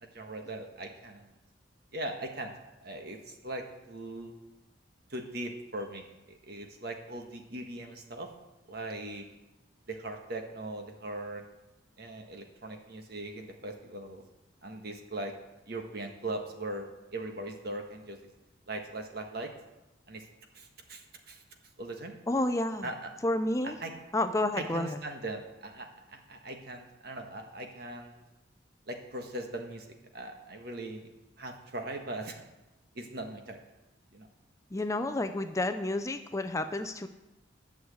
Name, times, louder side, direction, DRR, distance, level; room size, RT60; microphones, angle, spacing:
voice 1, 0.0-1.3 1.9-2.5 2.8-4.3 5.1-8.3 8.7-9.3 9.9-11.4 12.0-14.2 14.6-15.3 15.7-18.3 18.7-19.5 20.1-20.3 20.5-21.4 21.8-22.1 22.8-23.1 23.6-23.9 24.5-28.2 28.9-31.1 31.4-32.4 32.9-33.6 34.1-34.3, right 2 dB, 55° right, 4 dB, 1.5 m, -40 dB
voice 2, 22.3-22.9 23.2-23.8 24.1-25.0 34.7-37.1, left 2 dB, 15° left, 8 dB, 0.5 m, -30 dB
11.5 x 6.4 x 8.1 m, 0.99 s
head